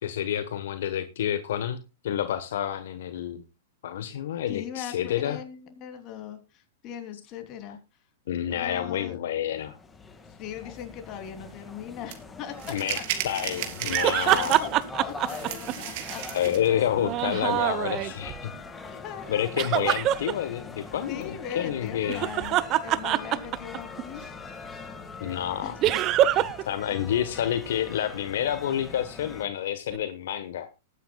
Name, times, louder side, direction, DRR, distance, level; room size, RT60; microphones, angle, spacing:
voice 1, 0.0-3.4 3.8-5.4 8.3-9.8 12.7-13.0 13.2-14.6 16.3-18.5 19.3-22.3 25.2-25.7 26.7-30.7, left 10 dB, 70° left, 10 dB, 1.2 m, -29 dB
voice 2, 4.5-7.8 8.5-9.2 10.3-13.1 14.1-14.7 15.0-16.2 18.8-19.5 21.1-24.3 25.6-26.0, left 9 dB, 35° left, 6 dB, 3.1 m, -40 dB
sound 1, 9.5-29.5, left 4 dB, 15° left, 1.9 m, -43 dB
sound 2, 12.1-12.2 12.6-14.8 15.2-16.7, right 11 dB, 55° right, 3.4 m, -34 dB
sound 3, 13.9-16.2 17.0-18.4 19.6-20.3 22.0-24.0 25.8-26.6 26.9-27.0 29.9-30.0, right 13 dB, 35° right, 0.9 m, -25 dB
20.5 x 9.6 x 2.3 m, 0.26 s
hypercardioid pair, 130°, 0 cm